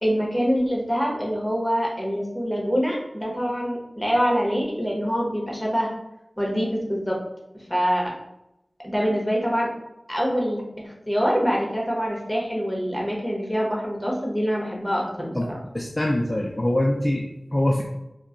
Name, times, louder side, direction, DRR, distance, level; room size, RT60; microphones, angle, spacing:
voice 1, 0.0-5.9 6.4-7.2 7.7-8.1 8.8-9.7 10.1-15.4, equal, 5° left, -3 dB, 0.8 m, -25 dB
voice 2, 15.7-17.8, left 1 dB, 30° left, -2 dB, 0.3 m, -23 dB
2.2 x 2.1 x 3.7 m, 0.88 s
wide cardioid pair, 65°, 0 cm